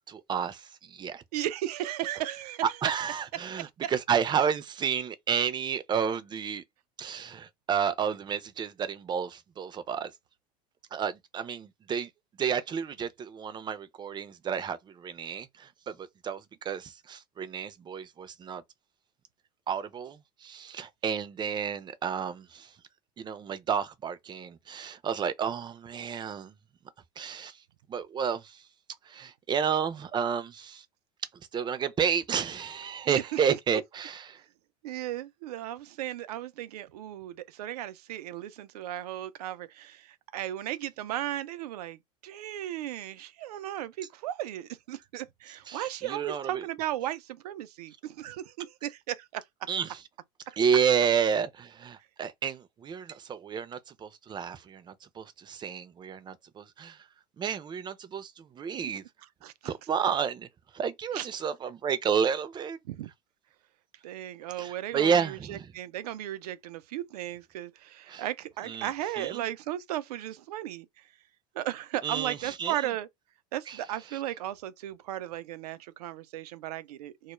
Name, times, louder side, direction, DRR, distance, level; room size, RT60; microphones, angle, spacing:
voice 1, 0.1-1.2 2.8-6.6 7.0-10.1 10.9-12.1 12.4-18.6 19.7-22.7 23.2-26.5 27.2-27.6 27.9-28.7 29.0-30.8 31.5-34.4 45.7-46.6 49.7-50.0 50.6-57.1 57.4-59.0 59.6-60.5 60.7-62.8 64.6-65.7 68.1-68.2 68.6-68.9 69.2-69.4 72.0-72.9 73.7-73.8, right 7 dB, 25° right, 0.5 m, -31 dB
voice 2, 1.3-2.6 3.6-3.9 33.0-33.4 34.8-49.4 50.5-50.6 59.4-59.7 61.1-61.3 62.9-63.1 64.0-70.9 71.5-73.1 73.5-77.3, right 13 dB, 85° right, 0.4 m, -36 dB
2.3 x 2.0 x 3.0 m
hypercardioid pair, 100°, 20 cm